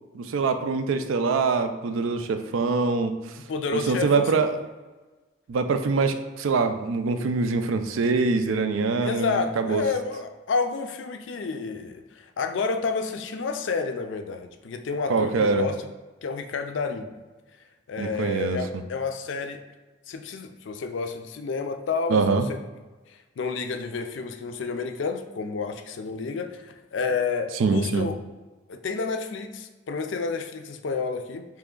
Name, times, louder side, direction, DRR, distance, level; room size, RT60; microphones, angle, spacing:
voice 1, 0.1-3.1 3.7-4.6 5.5-9.8 15.1-15.7 18.0-18.6 22.1-22.5 27.6-28.1, right 4 dB, 90° right, 8 dB, 0.4 m, -24 dB
voice 2, 3.5-4.3 9.0-15.9 16.2-17.1 17.9-19.6 20.1-22.6 23.1-28.2 28.7-31.5, left 4 dB, 70° left, 7 dB, 0.4 m, -30 dB
3.4 x 3.1 x 3.7 m, 1.2 s
head